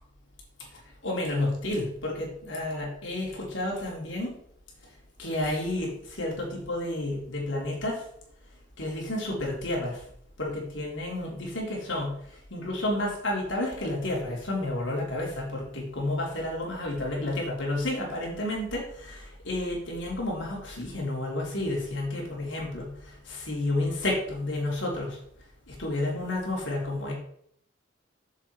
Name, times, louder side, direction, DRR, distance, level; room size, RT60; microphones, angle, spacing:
voice 1, 1.0-4.3 5.2-8.0 8.8-10.0 10.4-12.1 12.5-25.2 25.7-27.1, left 1 dB, 65° left, -3 dB, 3.5 m, -31 dB
7.6 x 7.3 x 4.5 m, 0.67 s
head